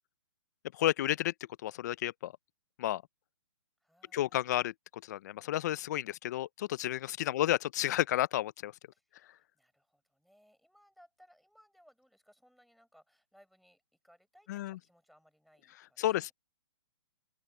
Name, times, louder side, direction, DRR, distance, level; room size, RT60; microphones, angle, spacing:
voice 1, 0.7-1.3 1.6-2.3 2.8-3.0 4.1-4.7 5.0-8.7 14.5-14.8 16.0-16.3, left 13 dB, 40° left, 0.6 m, -31 dB
voice 2, 3.8-4.7 7.2-7.6 8.9-16.3, equal, ahead, 6.1 m, -65 dB
open air
hypercardioid pair, 155°, 15 cm